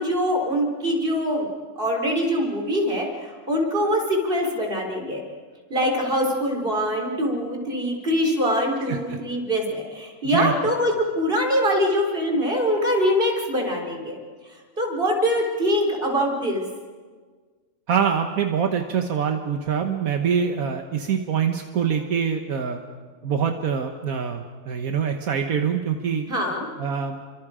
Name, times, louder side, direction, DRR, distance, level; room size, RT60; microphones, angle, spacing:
voice 1, 0.0-1.5 1.8-5.2 5.7-14.2 14.8-16.7 26.3-26.7, equal, 40° right, 1 dB, 4.1 m, -23 dB
voice 2, 17.9-22.8 23.2-26.3 26.8-27.2, right 7 dB, 80° right, 4 dB, 1.6 m, -24 dB
29.5 x 24.5 x 5.0 m, 1.5 s
omnidirectional pair, 1.5 m